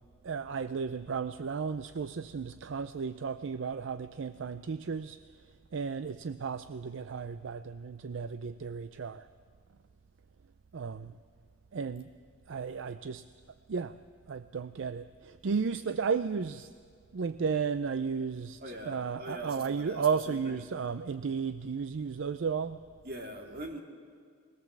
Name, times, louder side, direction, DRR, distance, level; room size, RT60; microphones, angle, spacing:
voice 1, 0.2-5.2 5.7-9.2 10.7-11.1 11.7-12.1 12.5-13.2 13.7-13.9 14.3-16.7 17.1-22.8, right 5 dB, 70° right, 13 dB, 0.4 m, -34 dB
voice 2, 18.6-20.6 23.0-23.8, right 1 dB, 50° right, 2 dB, 2.3 m, -42 dB
21.5 x 18.0 x 7.3 m, 2.1 s
head